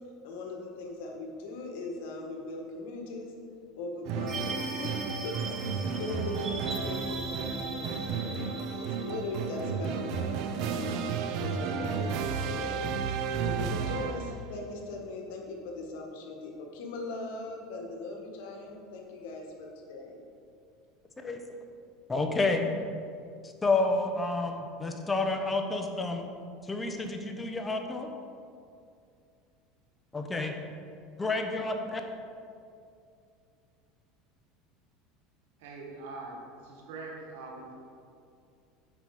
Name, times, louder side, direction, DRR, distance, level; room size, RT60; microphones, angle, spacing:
voice 1, 0.2-3.3 3.7-5.0 5.2-10.3 10.5-11.0 11.4-12.8 13.4-20.2, left 2 dB, 75° left, 1 dB, 1.5 m, -39 dB
sound 1, 4.0-14.5, right 6 dB, 60° right, 0.6 m, -33 dB
sound 2, 4.3-10.5, right 3 dB, 25° right, 1.6 m, -41 dB
voice 2, 22.1-22.7 23.4-26.3 26.6-28.1 30.1-30.5 31.2-32.0, left 3 dB, 15° left, 4 dB, 0.9 m, -29 dB
voice 3, 35.6-37.7, right 3 dB, 80° right, 0 dB, 1.6 m, -43 dB
7.5 x 5.7 x 4.9 m, 2.4 s
supercardioid pair, 115°, 0 cm